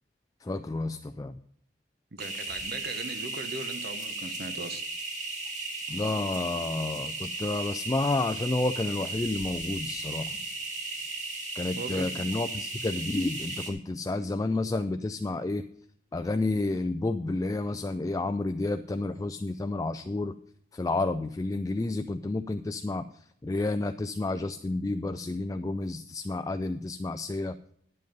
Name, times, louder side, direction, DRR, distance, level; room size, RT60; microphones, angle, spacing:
voice 1, 0.4-1.4 5.9-10.4 11.6-15.6 16.1-20.4 20.7-27.6, left 2 dB, 20° left, 0.3 m, -30 dB
voice 2, 2.1-4.8 11.8-12.4, right 3 dB, 55° right, 1.0 m, -39 dB
sound 1, 2.2-13.7, right 3 dB, 40° right, 2.3 m, -36 dB
11.0 x 7.8 x 5.3 m
head